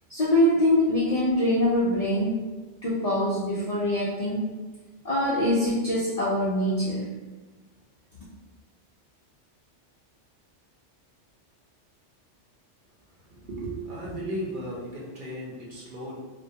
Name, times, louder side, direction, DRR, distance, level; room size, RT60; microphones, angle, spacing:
voice 1, 0.1-2.4 2.8-4.5 5.0-7.1, left 1 dB, 80° left, -7 dB, 0.3 m, -24 dB
voice 2, 13.3-16.2, right 1 dB, 55° right, -5 dB, 0.7 m, -35 dB
2.3 x 2.1 x 2.7 m, 1.2 s
omnidirectional pair, 1.2 m